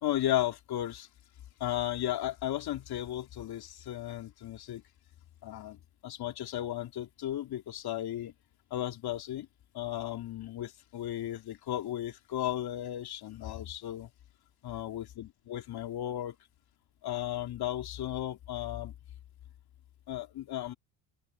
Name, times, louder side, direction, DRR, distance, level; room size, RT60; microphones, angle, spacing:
voice 1, 0.0-1.1 1.6-4.8 5.4-8.3 8.7-9.5 9.7-14.1 14.6-16.4 17.0-18.9 20.1-20.7, left 13 dB, 55° left, 3.1 m, -35 dB
open air
cardioid pair, 115°, 45 cm